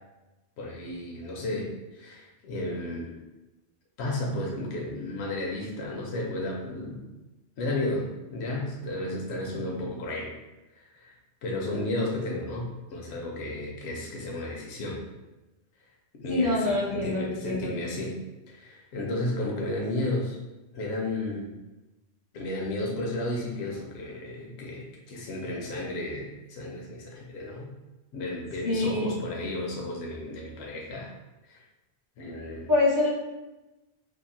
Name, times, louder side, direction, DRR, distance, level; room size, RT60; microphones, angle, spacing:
voice 1, 0.6-3.1 4.0-7.1 7.6-10.3 10.7-11.1 11.4-15.0 16.2-18.2 18.5-20.4 20.7-21.5 22.3-27.7 28.1-31.1 31.5-31.6 32.2-32.7, left 1 dB, 85° left, -2 dB, 0.9 m, -33 dB
voice 2, 16.3-17.7 28.6-29.1 32.7-33.1, left 2 dB, 25° right, -6 dB, 0.5 m, -25 dB
2.8 x 2.4 x 2.5 m, 1.1 s
omnidirectional pair, 1.1 m